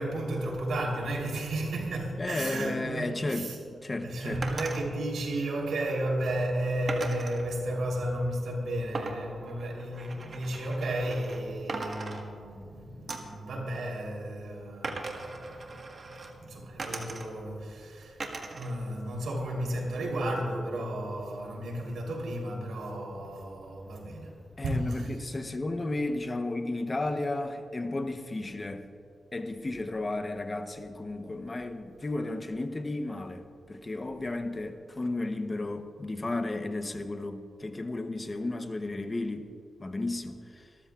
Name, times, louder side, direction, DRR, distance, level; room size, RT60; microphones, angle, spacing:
voice 1, 0.0-3.6 4.0-15.7 16.2-18.2 18.5-24.3 24.6-25.1, right 1 dB, 90° right, -1 dB, 3.5 m, -33 dB
voice 2, 2.2-4.4 24.6-28.8 29.3-39.5 39.8-40.7, left 2 dB, 30° left, 7 dB, 0.9 m, -33 dB
sound 1, 4.4-4.8 6.9-7.4 8.9-11.4 11.7-12.7 13.1-13.4 14.8-16.3 16.8-17.5 18.2-18.7 19.1-19.9, right 3 dB, 50° right, 1.5 m, -39 dB
26.5 x 13.5 x 2.4 m, 2.5 s
cardioid pair, 95°, 0 cm